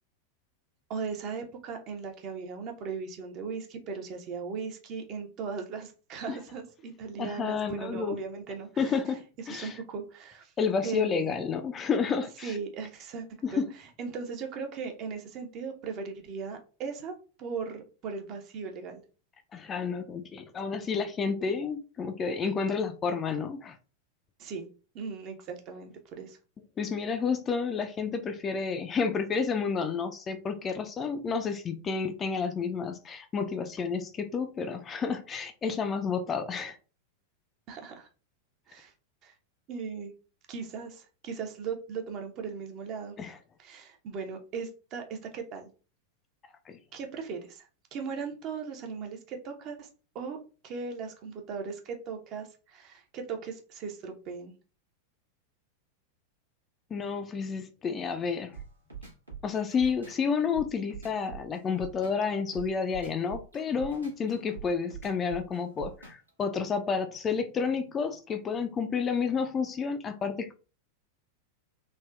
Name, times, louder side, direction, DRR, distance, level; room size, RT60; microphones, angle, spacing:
voice 1, 0.9-8.8 9.5-10.5 10.8-11.3 12.4-13.3 13.5-13.6 14.0-17.1 17.4-19.0 24.4-24.7 24.9-26.4 37.7-38.1 38.7-38.9 39.2-39.3 39.7-40.1 40.5-43.2 43.6-45.7 46.9-49.9 50.1-50.4 50.6-54.5, right 5 dB, 35° right, 0.6 m, -38 dB
voice 2, 7.2-8.2 8.8-9.8 10.6-12.6 13.4-13.7 19.5-23.8 26.8-36.8 43.2-43.4 46.7-46.8 56.9-58.6 59.4-70.5, left 5 dB, 25° left, 0.3 m, -30 dB
sound 1, 58.5-66.3, right 6 dB, 80° right, 1.0 m, -44 dB
3.4 x 2.2 x 2.3 m
figure-of-eight pair, 90°, 0 cm